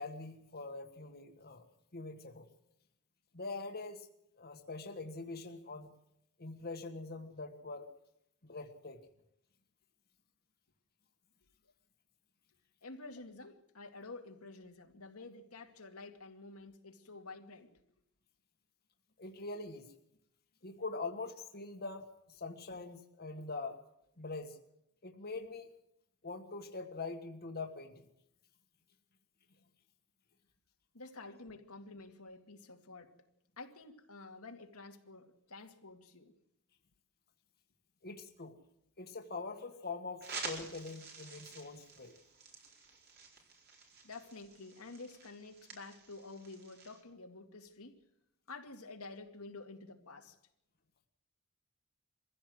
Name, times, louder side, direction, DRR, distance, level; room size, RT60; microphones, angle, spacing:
voice 1, 0.0-1.6 1.9-2.5 3.3-4.1 4.4-5.9 6.4-7.9 8.4-9.0 19.2-19.9 20.6-23.8 24.2-24.6 25.0-25.7 26.2-28.1 38.0-38.6 39.0-42.2, left 3 dB, 45° left, 4 dB, 1.8 m, -43 dB
voice 2, 12.8-17.7 30.9-33.1 33.6-36.3 44.0-48.0 48.5-50.4, left 3 dB, 85° left, 3 dB, 2.3 m, -50 dB
sound 1, 40.2-47.0, right 4 dB, 50° right, 4.4 m, -49 dB
23.0 x 15.5 x 7.9 m, 0.79 s
head